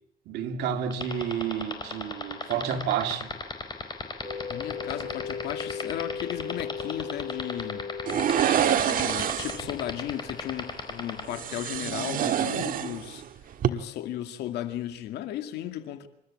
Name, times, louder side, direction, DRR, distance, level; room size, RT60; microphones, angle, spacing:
voice 1, 0.3-3.3, right 8 dB, 80° right, 2.3 m, -30 dB
sound 1, 0.9-11.2, left 4 dB, 25° left, 4.4 m, -33 dB
sound 2, 4.2-10.8, left 6 dB, 5° right, 4.4 m, -38 dB
voice 2, 4.5-7.9 8.7-13.2 13.6-16.1, left 12 dB, 80° left, 2.2 m, -35 dB
sound 3, 8.1-9.7 11.3-13.2 13.5-13.7, right 10 dB, 55° right, 1.6 m, -26 dB
27.5 x 13.5 x 8.6 m
cardioid pair, 110°, 17 cm